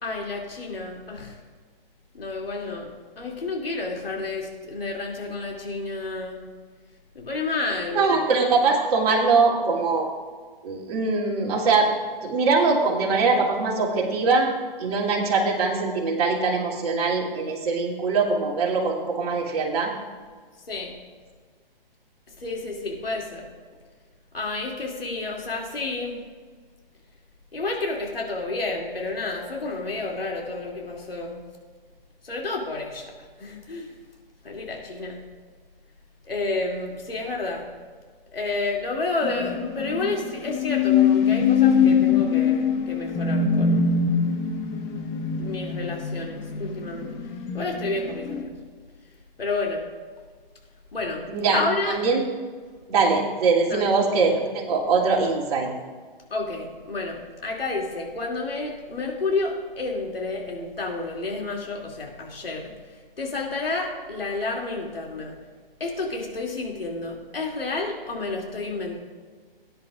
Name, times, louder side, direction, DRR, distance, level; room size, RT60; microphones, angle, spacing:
voice 1, 0.0-1.4 2.1-6.4 7.1-8.1 20.7-20.9 22.4-23.5 24.3-26.2 27.5-31.4 32.2-33.1 33.4-33.9 34.4-35.2 36.2-37.7 38.3-43.9 45.4-47.1 47.5-48.5 49.4-49.8 50.9-51.2 51.5-52.1 53.7-54.0 56.3-62.7 63.2-65.3 65.8-69.0, left 3 dB, 75° left, 0 dB, 2.7 m, -30 dB
voice 2, 7.9-10.1 10.6-11.9 12.2-14.5 14.8-19.9 51.3-52.2 52.9-55.7, right 4 dB, 40° right, -2 dB, 2.7 m, -22 dB
sound 1, 39.2-48.4, left 6 dB, 10° left, 0.5 m, -23 dB
18.0 x 10.5 x 2.5 m, 1.5 s
figure-of-eight pair, 130°, 29 cm